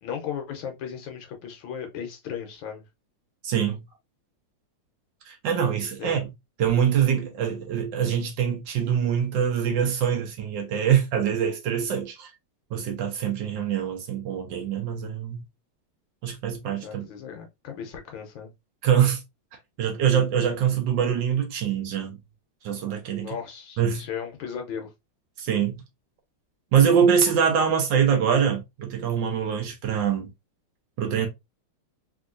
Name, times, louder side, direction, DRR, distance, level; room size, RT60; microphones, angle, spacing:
voice 1, 0.0-2.8 6.0-6.3 16.8-18.5 23.2-24.9, left 8 dB, 75° left, 1.4 m, -36 dB
voice 2, 3.4-3.8 5.2-6.3 6.6-12.3 12.7-15.4 16.2-17.0 18.8-19.2 19.8-22.2 22.6-23.3 23.8-24.1 25.4-25.8 26.7-30.3 31.0-31.3, right 8 dB, 70° right, 1.2 m, -24 dB
3.5 x 2.7 x 2.5 m
omnidirectional pair, 2.3 m